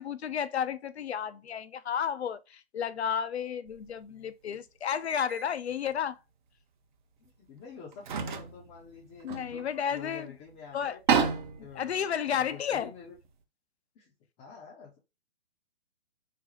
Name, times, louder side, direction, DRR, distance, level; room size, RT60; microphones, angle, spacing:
voice 1, 0.0-6.2 9.2-10.3 10.7-11.0 11.6-12.9, left 8 dB, 80° left, 0.5 m, -32 dB
sound 1, 3.7-3.9 5.1-5.5 5.8-6.0 7.2-7.3 7.9-10.1 10.5-10.6 10.8-13.3, right 6 dB, 50° right, 0.6 m, -32 dB
voice 2, 7.2-9.6 9.9-11.0 11.6-12.0 12.4-13.1 14.0-14.1 14.4-15.0, left 6 dB, 15° left, 0.4 m, -48 dB
3.9 x 2.0 x 2.9 m
figure-of-eight pair, 125°, 32 cm